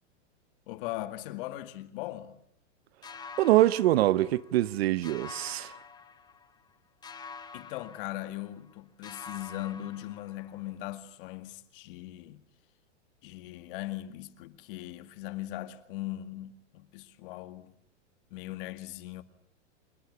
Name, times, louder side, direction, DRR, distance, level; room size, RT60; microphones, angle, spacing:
voice 1, 0.7-2.4 7.5-12.4 13.2-17.7 18.3-19.2, left 15 dB, 50° left, 2.2 m, -39 dB
sound 1, 3.0-4.7 5.0-6.7 7.0-8.7 9.0-10.7, left 5 dB, 10° left, 1.3 m, -47 dB
voice 2, 3.4-5.7, right 15 dB, 60° right, 1.1 m, -24 dB
27.0 x 20.5 x 9.8 m
supercardioid pair, 150°, 35 cm